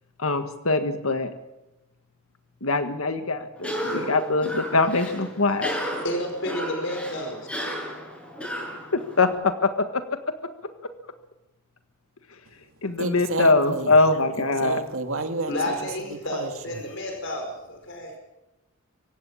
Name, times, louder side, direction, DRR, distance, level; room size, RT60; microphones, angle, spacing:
voice 1, 0.2-1.3 2.6-5.7 8.9-10.0 12.8-14.8, left 3 dB, 85° left, 8 dB, 1.7 m, -23 dB
Cough, 3.6-9.3, equal, 5° left, 6.5 m, -33 dB
voice 2, 6.0-7.5 15.5-18.1, left 1 dB, 60° left, 3 dB, 5.1 m, -31 dB
voice 3, 13.0-14.0 14.4-15.7 16.1-16.9, right 2 dB, 75° right, 6 dB, 2.2 m, -31 dB
25.0 x 15.5 x 8.6 m, 0.95 s
head